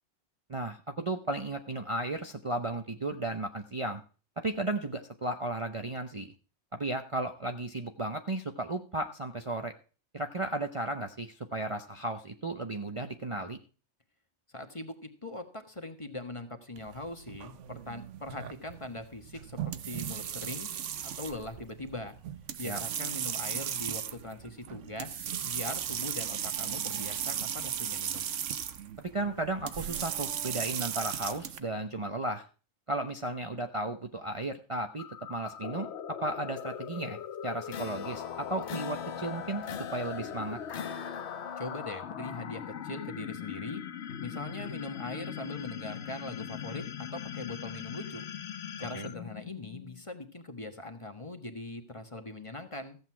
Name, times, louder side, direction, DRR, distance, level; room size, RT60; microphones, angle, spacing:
voice 1, 0.5-4.0 4.4-6.3 6.7-9.7 10.1-13.6 22.6-22.8 29.0-32.4 32.9-37.2 37.4-39.6 39.9-40.6 48.9-49.1, right 2 dB, 30° right, 5 dB, 0.8 m, -34 dB
voice 2, 14.5-20.8 21.2-22.2 22.6-28.3 41.6-43.8 44.2-48.3 48.8-53.0, left 2 dB, 25° left, 7 dB, 1.5 m, -41 dB
sound 1, 16.8-31.6, right 9 dB, 80° right, 1.2 m, -36 dB
sound 2, 35.0-50.1, left 8 dB, 70° left, 1.1 m, -40 dB
sound 3, 37.7-41.9, left 7 dB, 55° left, 0.9 m, -42 dB
14.5 x 8.2 x 4.5 m, 0.36 s
omnidirectional pair, 1.2 m